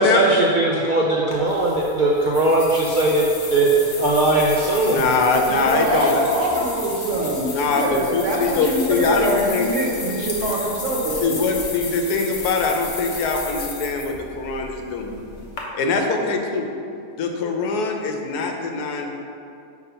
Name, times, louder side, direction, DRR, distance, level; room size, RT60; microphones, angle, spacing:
voice 1, 0.0-3.2 3.5-3.7 3.9-5.3, right 2 dB, 85° right, -4 dB, 0.4 m, -19 dB
sound 1, 1.3-15.6, left 3 dB, 45° left, 1.0 m, -34 dB
voice 2, 4.9-6.2 7.5-9.7 11.2-15.2 15.7-16.7 17.2-19.1, left 4 dB, 80° left, 3 dB, 1.2 m, -22 dB
voice 3, 5.4-11.4, right 1 dB, 55° right, -3 dB, 1.3 m, -24 dB
5.8 x 4.0 x 5.5 m, 2.5 s
omnidirectional pair, 1.7 m